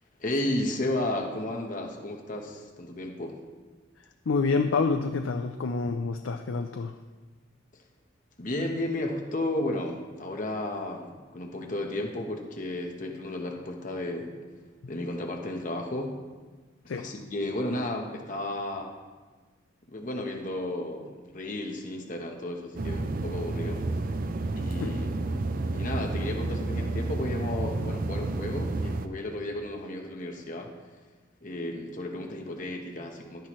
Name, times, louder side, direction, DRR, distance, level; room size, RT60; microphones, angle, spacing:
voice 1, 0.2-3.4 7.7-7.8 8.4-14.4 14.9-16.1 16.9-18.9 19.9-23.9 24.5-30.7 31.4-33.5, left 1 dB, 40° left, 2 dB, 1.1 m, -33 dB
voice 2, 4.3-6.9 16.9-17.1 24.8-24.9, left 4 dB, 90° left, 6 dB, 0.5 m, -27 dB
sound 1, 22.8-29.1, right 2 dB, 45° right, 0.5 m, -30 dB
11.5 x 10.5 x 3.1 m, 1.3 s
head